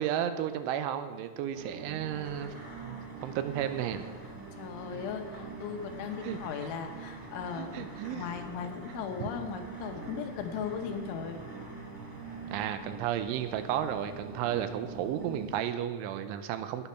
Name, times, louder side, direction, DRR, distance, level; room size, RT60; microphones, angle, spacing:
voice 1, 0.0-4.1 4.9-5.0 6.2-6.4 7.6-8.3 9.2-9.3 10.1-10.2 12.5-16.9, right 10 dB, 90° right, 10 dB, 3.1 m, -33 dB
sound 1, 1.5-15.5, right 5 dB, 70° right, 3.1 m, -44 dB
sound 2, 2.0-15.7, left 1 dB, 45° left, 0.5 m, -53 dB
voice 2, 4.6-11.4, left 7 dB, 80° left, 5 dB, 3.4 m, -38 dB
17.5 x 7.1 x 5.7 m, 1.5 s
omnidirectional pair, 5.5 m